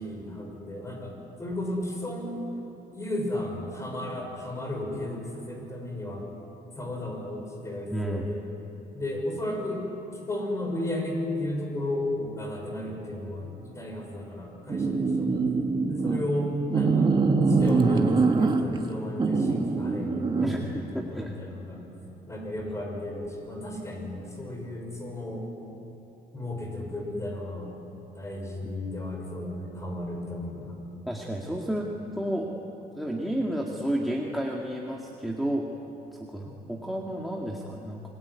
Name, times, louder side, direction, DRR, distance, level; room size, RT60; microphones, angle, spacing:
voice 1, 0.0-2.4 2.9-6.3 6.8-8.4 8.9-9.9 10.3-15.4 15.9-17.1 17.4-20.7 21.1-21.8 22.3-25.5 26.3-27.7 28.1-30.8, left 1 dB, 20° left, 1 dB, 6.1 m, -34 dB
voice 2, 7.9-8.3 20.4-21.4 22.6-22.7 28.6-28.7 31.1-32.5 33.0-35.7 36.2-38.0, right 1 dB, ahead, -1 dB, 2.1 m, -31 dB
sound 1, 14.7-16.2 16.7-18.8 19.2-20.6, right 4 dB, 30° right, 2.0 m, -23 dB
27.5 x 21.5 x 9.6 m, 3.0 s
cardioid pair, 140°, 16 cm